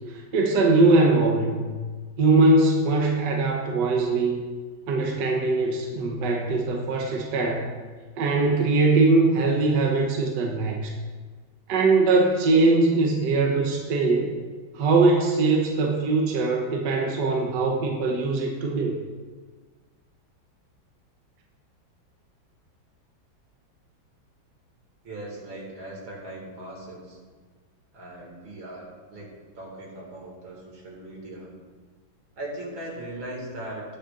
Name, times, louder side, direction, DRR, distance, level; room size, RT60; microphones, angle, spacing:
voice 1, 0.1-1.7 2.2-4.4 4.9-7.7 8.2-11.0 11.7-14.3 14.7-18.9, right 3 dB, 65° right, 0 dB, 1.5 m, -21 dB
voice 2, 25.0-27.2 27.9-31.5 32.4-33.8, right 1 dB, 90° right, -2 dB, 3.0 m, -39 dB
18.5 x 6.7 x 2.5 m, 1.5 s
omnidirectional pair, 2.1 m